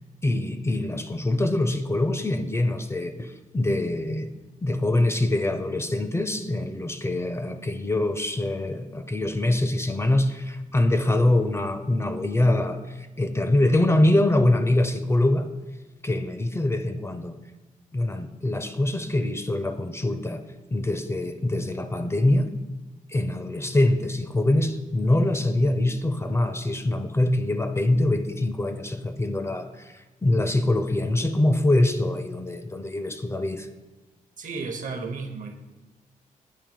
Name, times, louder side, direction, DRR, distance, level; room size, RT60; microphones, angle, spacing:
voice 1, 0.2-4.3 4.6-15.5 16.0-17.4 17.9-20.4 20.7-22.5 23.1-33.7, left 1 dB, 20° left, 0.4 m, -24 dB
voice 2, 34.4-35.5, right 4 dB, 65° right, 0.8 m, -33 dB
8.4 x 2.9 x 5.2 m
cardioid pair, 95°, 14 cm